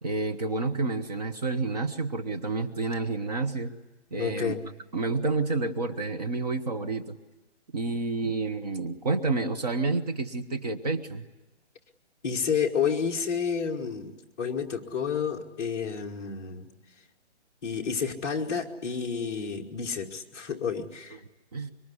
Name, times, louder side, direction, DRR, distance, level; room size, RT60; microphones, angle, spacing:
voice 1, 0.0-3.7 4.1-4.5 4.9-7.2 7.7-11.3 21.5-21.7, right 3 dB, 35° right, 6 dB, 1.3 m, -29 dB
voice 2, 4.2-4.7 12.2-16.7 17.6-21.2, left 6 dB, 15° left, -3 dB, 1.5 m, -30 dB
25.5 x 23.5 x 9.7 m, 1.1 s
hypercardioid pair, 170°, 36 cm